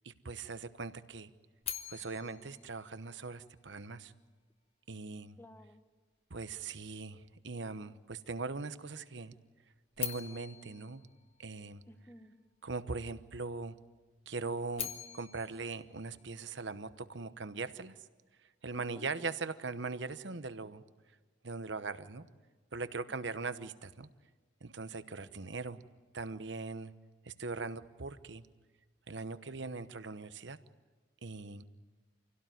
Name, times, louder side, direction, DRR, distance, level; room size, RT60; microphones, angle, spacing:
voice 1, 0.0-1.3 1.9-4.1 4.9-5.4 6.3-9.3 10.0-11.0 11.4-11.8 12.6-13.8 14.3-14.9 15.1-18.0 18.6-20.8 21.4-22.2 22.7-24.1 24.6-25.8 26.1-26.9 27.3-28.5 29.1-30.6 31.2-31.6, right 4 dB, 70° right, 12 dB, 1.0 m, -40 dB
sound 1, 1.6-3.8 9.9-12.1 14.5-16.9, left 9 dB, 30° left, 1.2 m, -44 dB
voice 2, 5.4-5.8 11.9-12.3 18.7-19.1 23.2-23.3 25.4-25.5, equal, 10° left, 9 dB, 1.1 m, -54 dB
27.0 x 17.0 x 9.3 m, 1.4 s
head